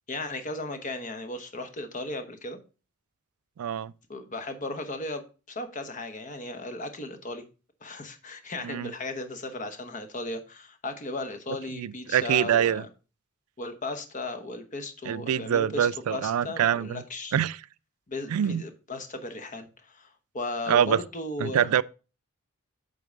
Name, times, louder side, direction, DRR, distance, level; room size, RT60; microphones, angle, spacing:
voice 1, 0.1-2.6 4.1-7.4 7.8-12.9 13.6-17.3 18.1-21.7, left 2 dB, 35° left, 0.9 m, -36 dB
voice 2, 3.6-3.9 8.6-8.9 11.8-12.8 15.1-17.0 17.3-17.6 18.3-18.6 20.7-21.0 21.4-21.8, right 9 dB, 90° right, 0.4 m, -25 dB
8.4 x 3.8 x 5.1 m
head